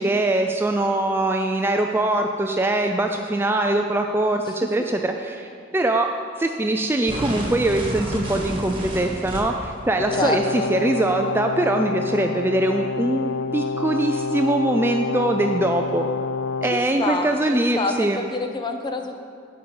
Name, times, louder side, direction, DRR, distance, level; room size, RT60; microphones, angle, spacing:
voice 1, 0.0-6.1 6.4-16.0 16.6-18.2, right 2 dB, 10° right, 4 dB, 0.3 m, -22 dB
sound 1, 7.1-9.7, equal, 30° right, 1.6 m, -30 dB
Brass instrument, 9.9-16.9, left 4 dB, 85° left, 0.4 m, -28 dB
voice 2, 10.1-10.7 16.7-19.2, left 2 dB, 25° left, 5 dB, 0.6 m, -27 dB
10.5 x 5.3 x 7.0 m, 2.4 s
head